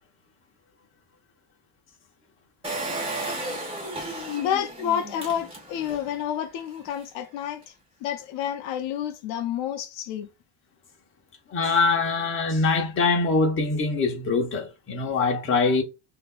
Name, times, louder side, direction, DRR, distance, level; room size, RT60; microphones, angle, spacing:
Engine, 2.6-6.1 6.6-6.7 6.9-7.0, right 1 dB, 10° right, 1.2 m, -33 dB
voice 1, 4.4-7.7 8.0-10.3, left 9 dB, 70° left, 0.6 m, -29 dB
voice 2, 11.5-15.8, left 3 dB, 30° left, 1.0 m, -23 dB
5.9 x 2.8 x 2.2 m
cardioid pair, 175°, 45 cm